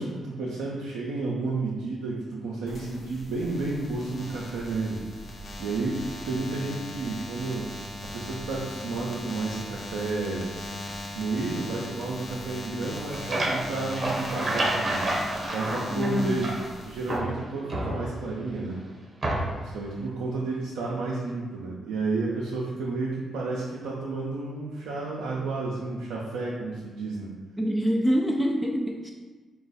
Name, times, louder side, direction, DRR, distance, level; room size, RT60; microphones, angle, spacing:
voice 1, 0.0-5.0 5.4-7.7 8.0-10.5 11.1-15.1 15.5-16.5 16.9-18.8 19.6-27.3, right 3 dB, 80° right, -5 dB, 0.4 m, -31 dB
sound 1, 2.7-17.2, left 2 dB, 55° left, 0.7 m, -39 dB
sound 2, 12.8-16.7 17.1-18.4 19.2-19.7, right 1 dB, 45° right, 0.8 m, -30 dB
voice 2, 15.9-16.5 27.6-29.1, equal, 10° left, 0 dB, 0.4 m, -25 dB
3.8 x 2.3 x 3.8 m, 1.4 s
hypercardioid pair, 45°, 0 cm